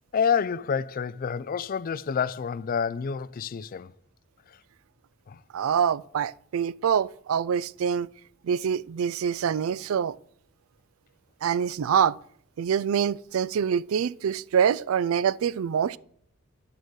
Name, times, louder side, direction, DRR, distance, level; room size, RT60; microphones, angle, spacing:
voice 1, 0.1-3.9 4.5-4.6 5.3-5.4, left 6 dB, 45° left, 0.4 m, -28 dB
voice 2, 5.5-8.1 8.4-10.2 11.4-12.2 12.6-16.0, right 7 dB, 80° right, 0.4 m, -25 dB
11.0 x 6.6 x 4.7 m
head